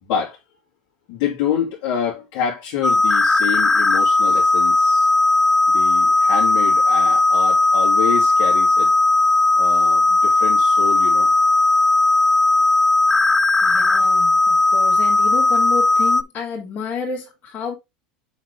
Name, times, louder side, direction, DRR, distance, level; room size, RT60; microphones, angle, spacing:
voice 1, 0.0-0.4 1.1-5.1 5.7-8.9 9.6-11.3, left 8 dB, 65° left, 2.9 m, -27 dB
sound 1, 2.8-16.2, left 2 dB, 10° left, 0.5 m, -16 dB
voice 2, 13.6-17.8, left 5 dB, 45° left, 3.5 m, -30 dB
7.2 x 4.3 x 3.7 m
supercardioid pair, 105°, 4 cm